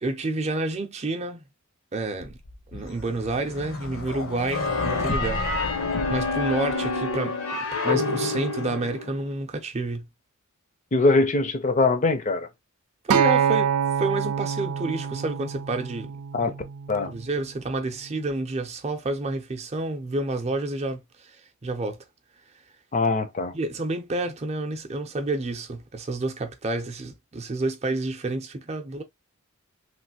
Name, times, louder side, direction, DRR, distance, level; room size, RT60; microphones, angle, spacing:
voice 1, 0.0-1.4 1.9-2.4 2.7-5.4 6.1-10.1 13.0-16.1 17.0-21.4 21.6-22.0 23.5-29.0, right 2 dB, 30° right, 0.6 m, -29 dB
sound 1, 2.2-7.1, left 3 dB, 65° left, 0.8 m, -34 dB
sound 2, 4.5-9.3, left 3 dB, 85° left, 1.0 m, -27 dB
voice 2, 10.9-12.5 16.3-16.5 16.9-17.1 22.9-23.5, left 3 dB, 35° left, 0.5 m, -22 dB
Acoustic guitar, 13.1-17.4 18.2-18.3, right 8 dB, 90° right, 0.4 m, -26 dB
3.2 x 2.6 x 2.7 m
head